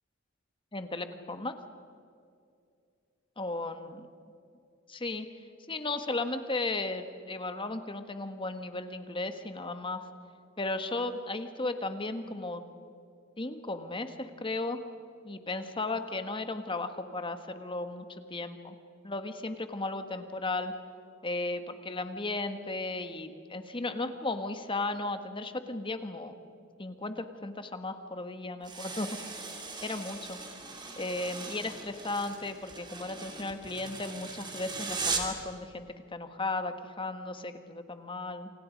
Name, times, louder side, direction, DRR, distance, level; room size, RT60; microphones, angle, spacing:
voice 1, 0.7-1.5 3.4-4.1 4.9-5.3 5.7-10.0 10.6-12.6 13.4-14.8 15.2-18.8 19.0-20.7 21.2-26.3 26.8-29.2 29.8-30.4 31.0-38.5, left 2 dB, 25° left, 8 dB, 1.5 m, -35 dB
sound 1, 28.6-35.4, right 4 dB, 20° right, 2.9 m, -39 dB
28.5 x 26.0 x 5.2 m, 2.4 s
head